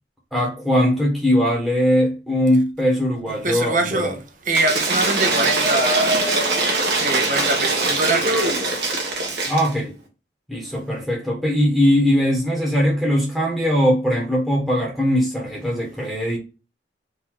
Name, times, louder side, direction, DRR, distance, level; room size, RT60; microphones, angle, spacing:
voice 1, 0.3-4.1 9.5-9.9 10.5-16.4, equal, ahead, 1.2 m, -20 dB
voice 2, 3.3-4.2 4.4-9.4, right 2 dB, 50° right, 0.9 m, -25 dB
Cheering / Applause / Crowd, 4.5-9.7, right 2 dB, 70° right, 1.3 m, -22 dB
3.9 x 2.7 x 4.6 m
head